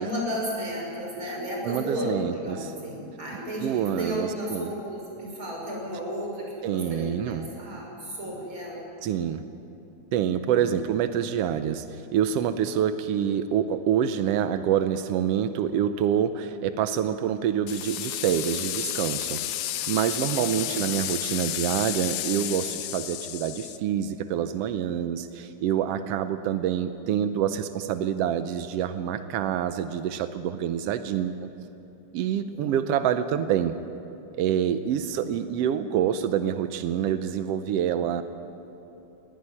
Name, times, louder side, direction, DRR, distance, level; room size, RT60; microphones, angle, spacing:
voice 1, 0.0-8.9 10.4-10.7 20.3-20.6 32.5-33.0 35.1-35.3, equal, 40° right, -2 dB, 6.9 m, -33 dB
voice 2, 1.6-2.7 3.6-4.7 6.6-7.4 9.0-9.4 10.1-19.4 19.9-31.5 32.1-33.7 34.4-38.2, right 9 dB, 85° right, 10 dB, 1.3 m, -26 dB
sound 1, 17.7-23.8, left 13 dB, 75° left, 1.7 m, -32 dB
21.0 x 17.0 x 9.9 m, 2.9 s
omnidirectional pair, 3.6 m